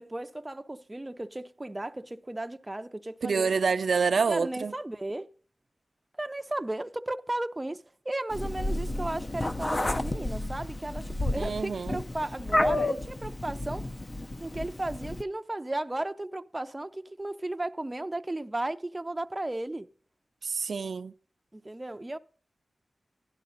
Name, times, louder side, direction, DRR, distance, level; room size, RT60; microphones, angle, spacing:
voice 1, 0.0-3.5 4.3-5.3 6.2-13.9 14.4-19.9 21.5-22.2, right 1 dB, 20° right, 0.6 m, -35 dB
voice 2, 3.2-4.7 11.3-12.0 20.4-21.1, right 5 dB, 80° right, 0.5 m, -27 dB
Meow, 8.3-15.2, left 2 dB, 30° left, 0.7 m, -31 dB
11.5 x 11.5 x 3.9 m
wide cardioid pair, 95°, 0 cm